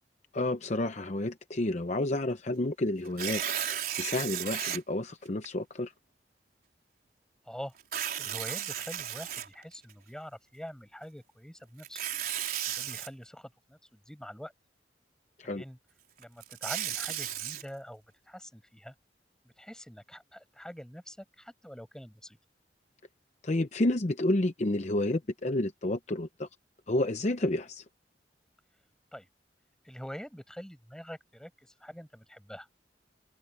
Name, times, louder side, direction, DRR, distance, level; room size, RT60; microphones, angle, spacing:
voice 1, 0.3-5.9 15.4-15.6 23.4-26.5 26.9-27.8, left 1 dB, 40° left, 0.7 m, -30 dB
Tearing, 3.1-4.8 5.4-5.5 7.8-9.9 11.8-13.1 16.2-17.6, right 10 dB, 55° right, 5.0 m, -34 dB
voice 2, 7.4-7.8 8.2-12.0 12.7-14.5 15.4-15.8 16.2-18.9 19.4-22.4 29.1-29.3 29.8-32.7, equal, 5° left, 6.0 m, -45 dB
open air
head